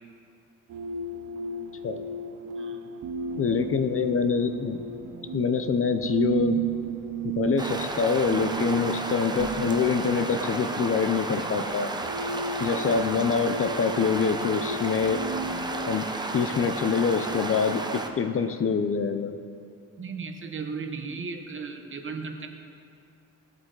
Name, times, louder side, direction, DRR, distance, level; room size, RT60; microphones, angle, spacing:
sound 1, 0.7-16.0, right 4 dB, 70° right, 0.6 m, -35 dB
voice 1, 3.4-4.8 5.3-6.6 7.2-11.9 12.6-15.2 15.9-16.1 16.3-19.4, left 5 dB, 40° left, 9 dB, 0.6 m, -25 dB
sound 2, 7.6-18.1, right 2 dB, 15° right, 0.7 m, -33 dB
sound 3, 9.4-14.8, right 1 dB, 85° right, 1.7 m, -45 dB
voice 2, 20.0-22.5, right 4 dB, 40° right, 5 dB, 1.0 m, -36 dB
18.5 x 8.1 x 3.9 m, 2.4 s
cardioid pair, 140°, 33 cm